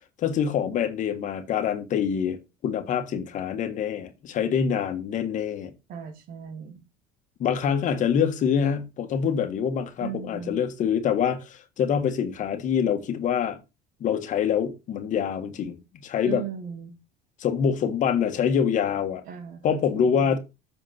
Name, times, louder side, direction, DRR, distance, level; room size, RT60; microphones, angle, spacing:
voice 1, 0.2-2.4 2.6-5.7 7.4-13.6 14.0-15.7 16.0-16.4 17.4-19.2 19.6-20.4, left 7 dB, 55° left, 1.6 m, -25 dB
voice 2, 5.9-6.8 10.0-10.6 16.2-16.9 19.3-20.1, right 8 dB, 65° right, 2.2 m, -37 dB
7.8 x 4.5 x 5.9 m
supercardioid pair, 95°, 16 cm